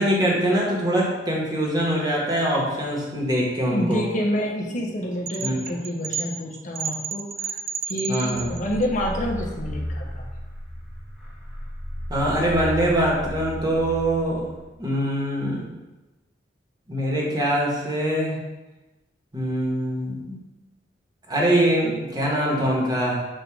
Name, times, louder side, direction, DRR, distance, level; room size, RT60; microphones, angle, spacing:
voice 1, 0.0-4.0 5.4-5.6 8.1-8.5 12.1-14.5 14.8-15.7 16.9-18.4 19.3-20.4 21.3-23.2, right 1 dB, 20° right, -3 dB, 1.3 m, -23 dB
voice 2, 3.7-7.6 7.9-10.2, equal, 45° left, -1 dB, 1.0 m, -28 dB
sound 1, 5.3-8.8, right 7 dB, 55° right, 0.4 m, -32 dB
sound 2, 8.2-14.8, equal, ahead, 1.3 m, -34 dB
7.6 x 2.6 x 4.7 m, 1.1 s
head